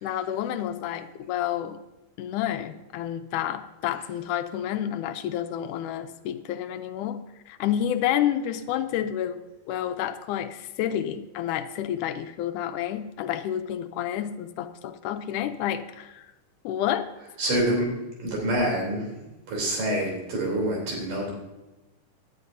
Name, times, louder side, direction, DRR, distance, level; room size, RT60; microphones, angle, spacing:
voice 1, 0.0-1.8 2.2-9.4 9.7-16.3 16.6-17.1, left 10 dB, 80° left, 9 dB, 2.1 m, -29 dB
voice 2, 17.4-17.9 18.2-19.1 19.5-21.3, right 1 dB, 85° right, -1 dB, 5.0 m, -26 dB
17.0 x 10.5 x 2.7 m, 1.0 s
omnidirectional pair, 3.7 m